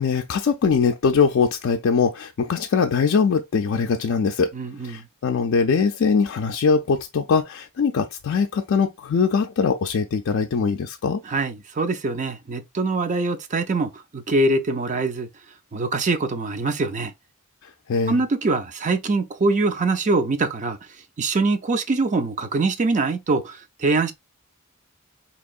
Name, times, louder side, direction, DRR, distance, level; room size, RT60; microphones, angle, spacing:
voice 1, 0.0-4.5 4.8-11.2 17.6-18.2, left 5 dB, 60° left, 0.4 m, -22 dB
voice 2, 4.5-5.0 11.3-15.3 15.7-17.1 18.1-20.8 21.2-24.1, right 3 dB, 35° right, 0.4 m, -23 dB
4.4 x 2.9 x 2.4 m
head